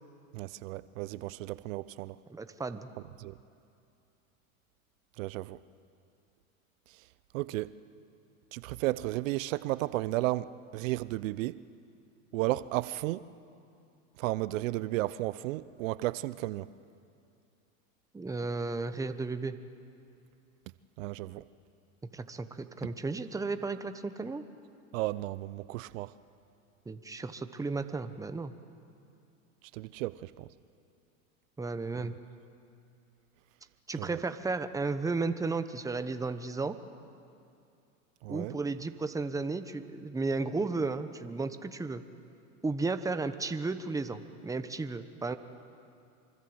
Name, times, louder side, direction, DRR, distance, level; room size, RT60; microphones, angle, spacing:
voice 1, 0.3-2.2 3.2-3.3 5.2-5.6 7.3-7.7 8.5-11.6 12.3-13.2 14.2-16.7 21.0-21.4 24.9-26.1 29.7-30.5 31.9-32.1 34.0-34.2 38.2-38.6, right 18 dB, 65° right, 0.7 m, -33 dB
voice 2, 2.3-2.9 18.1-19.6 22.1-24.4 26.9-28.5 31.6-32.1 33.9-36.8 38.3-42.0 42.6-45.4, right 3 dB, 10° right, 1.0 m, -34 dB
25.5 x 24.5 x 8.0 m
hypercardioid pair, 115°, 42 cm